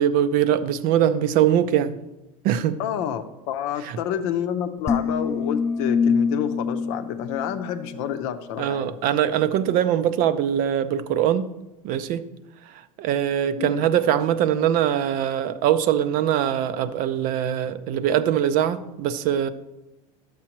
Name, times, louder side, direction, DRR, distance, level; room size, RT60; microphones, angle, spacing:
voice 1, 0.0-2.0 2.4-2.8 3.8-4.0 8.6-11.5 11.8-12.2 12.7-19.5, right 10 dB, 50° right, 0.5 m, -22 dB
voice 2, 2.8-9.0 13.6-13.9, left 9 dB, 60° left, 0.7 m, -29 dB
sound 1, 4.9-8.2, left 5 dB, 15° left, 0.4 m, -25 dB
11.0 x 7.4 x 3.0 m
hypercardioid pair, 105°, 18 cm